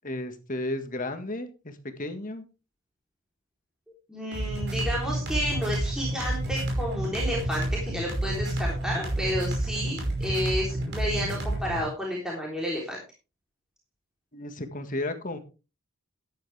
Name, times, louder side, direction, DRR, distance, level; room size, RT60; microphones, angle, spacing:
voice 1, 0.0-2.5 14.3-15.4, left 1 dB, 40° left, 7 dB, 1.7 m, -33 dB
voice 2, 4.1-13.0, equal, 5° right, -3 dB, 3.4 m, -31 dB
sound 1, 4.3-11.9, right 1 dB, 50° right, 5.2 m, -29 dB
13.0 x 10.5 x 3.4 m, 0.32 s
head